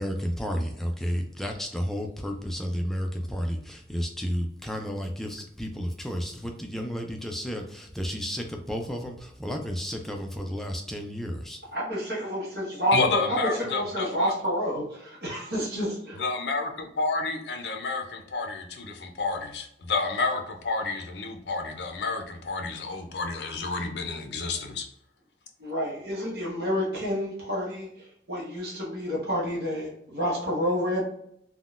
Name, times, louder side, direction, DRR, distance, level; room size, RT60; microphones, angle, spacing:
voice 1, 0.0-11.6, equal, ahead, 2 dB, 0.3 m, -32 dB
voice 2, 11.7-16.2 25.6-31.0, equal, 55° right, -4 dB, 1.0 m, -29 dB
voice 3, 12.9-14.3 16.2-24.8, left 3 dB, 65° left, 4 dB, 0.5 m, -30 dB
3.6 x 2.2 x 2.4 m, 0.73 s
head